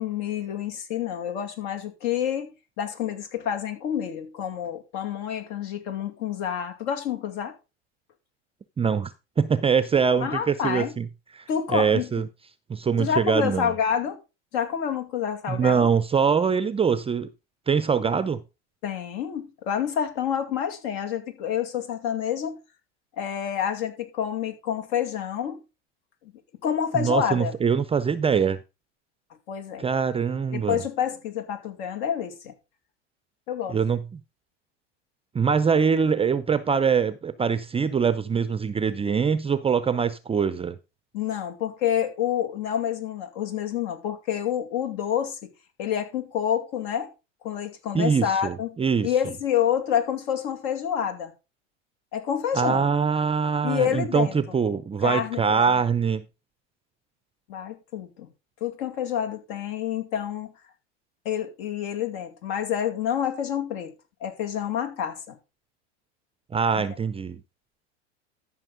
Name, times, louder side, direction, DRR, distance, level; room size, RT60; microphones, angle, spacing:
voice 1, 0.0-7.5 10.2-10.9 11.5-12.1 13.0-14.2 14.5-15.9 18.8-22.6 23.2-25.6 26.6-27.5 29.5-29.9 30.5-32.5 33.5-33.8 41.1-45.5 45.8-47.1 47.4-48.8 49.0-51.3 52.1-52.9 53.6-54.3 55.0-55.8 57.5-58.3 58.6-60.5 61.2-63.9 64.2-65.4 66.7-66.8, left 9 dB, 60° left, 2.4 m, -28 dB
voice 2, 8.8-9.1 9.4-11.1 11.3-12.3 12.7-13.7 15.5-17.3 17.7-18.4 26.9-28.6 29.8-30.8 33.7-34.2 35.3-40.8 47.9-49.1 52.5-56.2 66.5-67.4, right 6 dB, 15° right, 0.5 m, -23 dB
13.0 x 5.9 x 3.9 m
hypercardioid pair, 95°, 36 cm